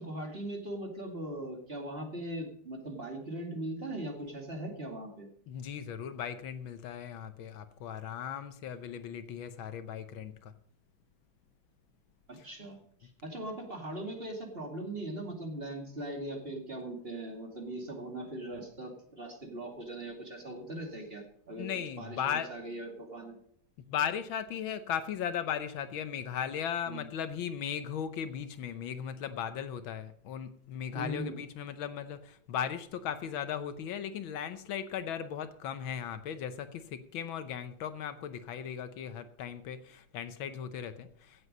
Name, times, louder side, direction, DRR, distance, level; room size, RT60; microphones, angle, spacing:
voice 1, 0.0-5.3 12.3-21.7 22.0-23.4 26.9-27.1 30.9-31.4, right 1 dB, 30° right, 2 dB, 2.5 m, -40 dB
voice 2, 5.5-10.5 12.4-12.5 21.6-22.5 23.9-41.5, left 8 dB, 80° left, 11 dB, 1.7 m, -37 dB
16.0 x 8.0 x 5.4 m, 0.65 s
omnidirectional pair, 2.2 m